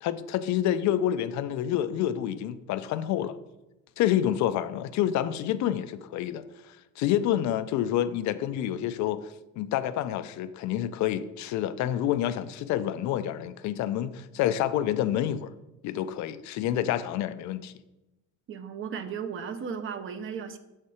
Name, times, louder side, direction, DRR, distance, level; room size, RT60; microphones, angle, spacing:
voice 1, 0.0-3.4 4.0-9.2 9.6-15.5 15.8-17.7, left 11 dB, 60° left, 13 dB, 0.4 m, -28 dB
voice 2, 18.5-20.6, right 7 dB, 40° right, 10 dB, 0.5 m, -35 dB
6.5 x 4.3 x 4.8 m, 0.99 s
cardioid pair, 150°, 33 cm